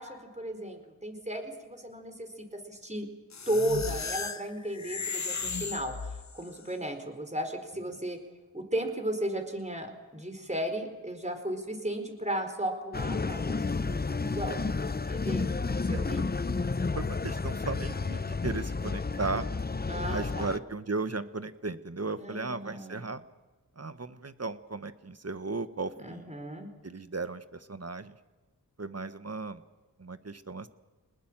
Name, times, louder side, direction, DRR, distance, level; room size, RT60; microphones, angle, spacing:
voice 1, 0.0-3.1 3.5-8.2 8.5-16.2 19.9-20.5 22.2-23.0 26.0-26.7, right 1 dB, 20° right, 6 dB, 4.5 m, -35 dB
sound 1, 3.3-6.6, left 5 dB, 45° left, 1.0 m, -35 dB
sound 2, 12.9-20.6, left 4 dB, 25° left, 0.7 m, -31 dB
voice 2, 16.9-19.4 20.1-23.2 23.8-26.3 26.8-28.1 28.8-29.6 30.0-30.7, right 3 dB, 40° right, 12 dB, 1.3 m, -36 dB
24.5 x 20.0 x 7.5 m, 1.3 s
cardioid pair, 40°, 39 cm